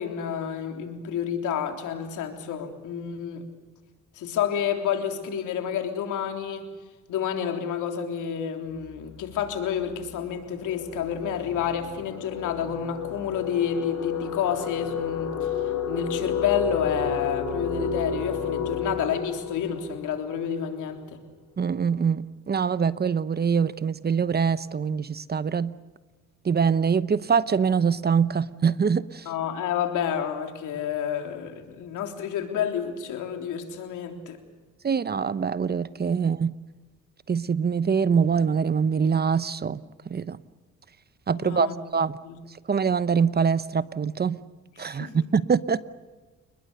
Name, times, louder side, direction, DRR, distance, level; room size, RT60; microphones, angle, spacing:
voice 1, 0.0-3.5 4.2-6.7 7.1-15.3 15.9-21.2 29.3-34.4 41.3-41.7 42.2-42.4 44.8-45.3, left 8 dB, 85° left, 5 dB, 3.6 m, -29 dB
sound 1, 8.8-9.1 9.4-20.9, left 7 dB, 65° left, 4.7 m, -32 dB
voice 2, 21.6-25.7 26.4-29.2 34.8-36.5 37.3-39.8 40.1-40.4 41.3-42.2 42.7-44.4 44.8-45.8, right 6 dB, 35° right, 16 dB, 0.9 m, -24 dB
29.5 x 20.5 x 6.8 m, 1.3 s
cardioid pair, 90°, 30 cm